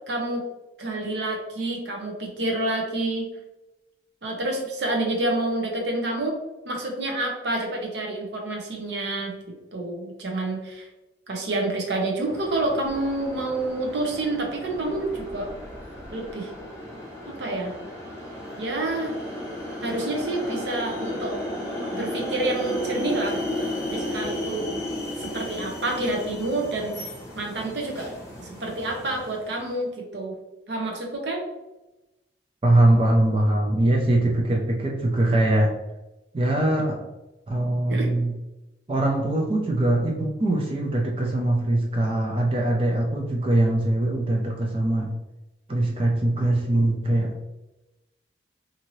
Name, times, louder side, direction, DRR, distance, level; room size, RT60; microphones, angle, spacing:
voice 1, 0.1-0.4 0.8-3.3 4.2-6.4 6.6-9.3 9.7-10.9 11.3-15.5 16.1-16.5 17.3-17.7 18.6-19.1 19.8-21.3 21.9-23.4 23.9-24.6 25.2-28.1 28.4-30.4 30.7-31.4 37.9-38.1, right 2 dB, 75° right, 1 dB, 0.7 m, -28 dB
sound 1, 12.2-29.7, left 1 dB, 15° left, 0.7 m, -34 dB
voice 2, 32.6-35.7 36.3-37.0 37.5-38.4 38.9-45.1 45.7-47.3, right 1 dB, 30° right, 0 dB, 0.4 m, -22 dB
2.7 x 2.6 x 3.0 m, 1.0 s
head